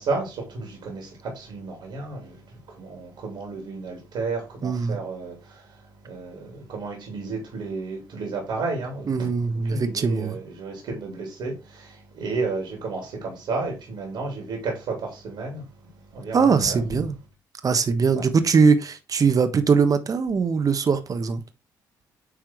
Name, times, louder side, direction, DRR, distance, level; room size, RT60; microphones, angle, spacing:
voice 1, 0.0-2.4 2.8-5.6 6.0-9.3 9.6-15.6 16.1-17.1 18.1-18.2, right 3 dB, 70° right, 3.4 m, -32 dB
voice 2, 4.6-5.0 9.1-10.4 16.3-17.1 17.6-21.4, right 5 dB, 45° right, 1.3 m, -21 dB
10.0 x 3.6 x 4.6 m
hypercardioid pair, 55°, 8 cm